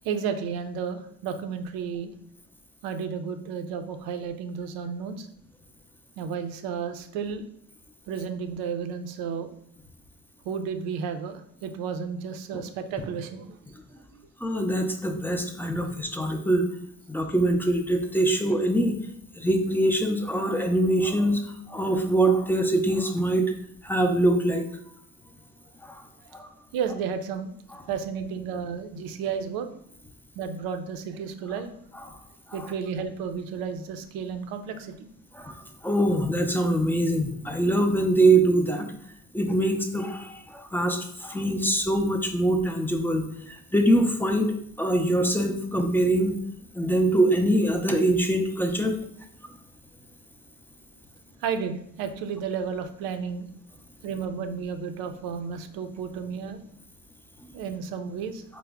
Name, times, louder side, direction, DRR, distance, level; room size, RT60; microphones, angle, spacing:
voice 1, 0.0-2.1 2.8-5.3 6.2-7.4 8.1-9.5 10.4-13.6 14.1-14.2 26.7-27.6 27.9-29.7 30.4-31.7 32.5-35.1 51.4-53.5 54.0-56.6 57.5-58.4, right 6 dB, 90° right, 8 dB, 0.5 m, -32 dB
voice 2, 14.4-16.6 17.1-19.0 19.4-21.4 21.7-23.5 23.8-24.7 25.8-26.0 26.3-26.5 35.4-35.5 35.8-38.9 39.3-46.4 46.7-48.9, right 1 dB, 5° left, 4 dB, 0.3 m, -23 dB
4.6 x 2.0 x 3.4 m, 0.67 s
cardioid pair, 105°, 35 cm